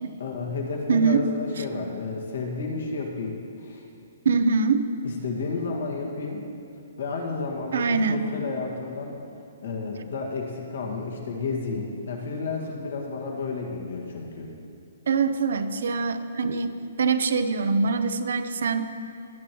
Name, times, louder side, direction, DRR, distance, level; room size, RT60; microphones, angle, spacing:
voice 1, 0.2-3.8 5.0-6.5 7.0-9.2 9.6-14.5, left 4 dB, 60° left, 0 dB, 1.9 m, -31 dB
voice 2, 0.9-1.2 4.2-4.9 7.7-8.2 15.1-18.9, right 5 dB, 60° right, 10 dB, 0.7 m, -23 dB
20.0 x 8.4 x 3.1 m, 2.6 s
hypercardioid pair, 180°, 0 cm